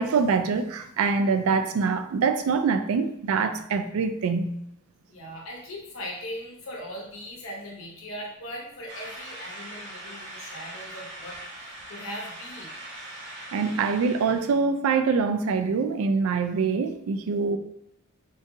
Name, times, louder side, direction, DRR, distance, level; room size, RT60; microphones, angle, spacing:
voice 1, 0.0-4.5 13.5-17.6, right 5 dB, 80° right, 8 dB, 0.3 m, -24 dB
voice 2, 5.1-11.4 11.9-12.7, equal, 65° left, -1 dB, 0.9 m, -39 dB
sound 1, 8.9-14.6, right 1 dB, 55° right, 0.8 m, -41 dB
3.6 x 2.6 x 2.7 m, 0.76 s
head